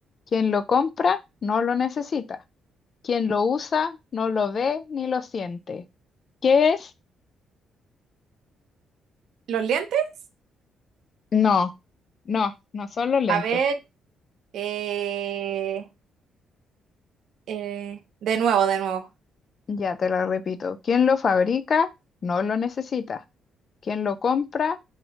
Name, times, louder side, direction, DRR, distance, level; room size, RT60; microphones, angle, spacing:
voice 1, 0.3-2.4 3.0-5.8 6.4-6.9 11.3-11.7 12.3-13.4 19.7-21.9 22.2-23.2 23.8-24.8, left 6 dB, 45° left, 0.3 m, -24 dB
voice 2, 9.5-10.1 13.3-13.8 14.5-15.9 17.5-19.1, right 8 dB, 75° right, 0.5 m, -25 dB
2.7 x 2.0 x 2.8 m
cardioid pair, 90°, 0 cm